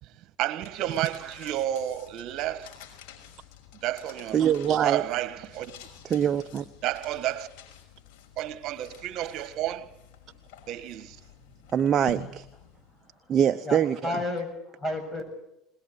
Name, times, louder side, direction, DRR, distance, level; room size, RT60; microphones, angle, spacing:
voice 1, 0.0-2.7 3.8-4.4 4.8-5.7 6.8-7.5 8.4-9.9 10.7-11.2, right 13 dB, 60° right, 1.7 m, -31 dB
sound 1, 0.6-13.2, left 5 dB, 70° left, 5.7 m, -49 dB
voice 2, 4.3-5.0 6.0-6.6 11.7-12.5 13.3-14.2, right 9 dB, 40° right, 0.9 m, -24 dB
voice 3, 13.0-13.4 13.6-15.2, left 2 dB, 15° left, 7.4 m, -33 dB
21.0 x 20.5 x 8.1 m
supercardioid pair, 85°, 0 cm